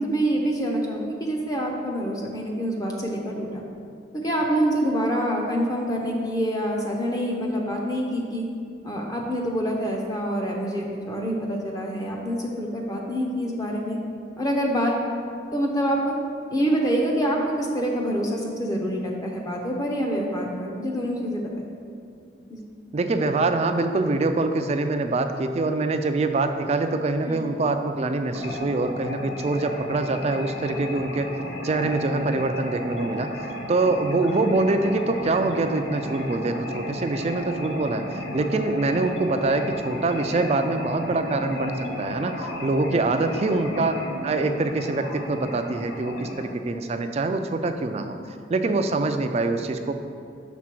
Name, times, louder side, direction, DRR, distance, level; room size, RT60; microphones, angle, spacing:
voice 1, 0.0-3.6 4.2-8.4 8.8-14.0 14.4-15.0 15.5-16.1 16.5-21.6 22.5-22.6 27.2-27.4, equal, 20° left, -1 dB, 0.6 m, -26 dB
voice 2, 22.9-31.3 31.6-33.4 33.7-44.0 44.2-48.2 48.5-49.9, right 3 dB, 35° right, 7 dB, 0.3 m, -24 dB
sound 1, 28.3-46.5, left 1 dB, 80° left, 0.8 m, -34 dB
6.1 x 3.7 x 6.0 m, 2.4 s
head